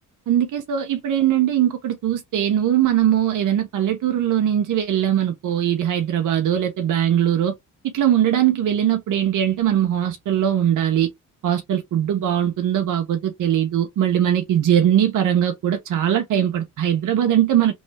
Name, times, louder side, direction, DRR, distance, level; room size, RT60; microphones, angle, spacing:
voice 1, 0.3-7.5 7.8-11.1 11.4-17.7, right 10 dB, 70° right, 0.9 m, -20 dB
3.1 x 3.0 x 3.4 m
supercardioid pair, 70°, 32 cm